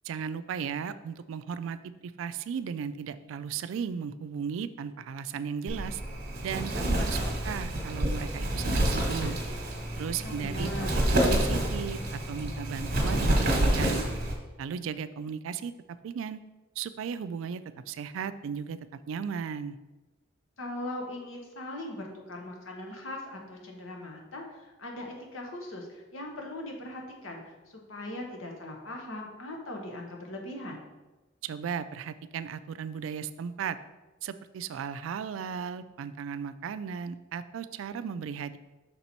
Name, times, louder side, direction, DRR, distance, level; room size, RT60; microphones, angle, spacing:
voice 1, 0.0-6.0 6.4-9.4 10.0-14.0 14.6-16.4 16.8-18.8 19.1-19.8 31.4-33.8 34.2-38.6, right 7 dB, 75° right, 13 dB, 0.3 m, -36 dB
Wind, 5.7-14.3, right 1 dB, 50° right, 1.1 m, -28 dB
voice 2, 10.2-11.0 20.6-30.8, left 1 dB, 80° left, 1 dB, 1.2 m, -40 dB
5.9 x 4.4 x 4.1 m, 1.1 s
head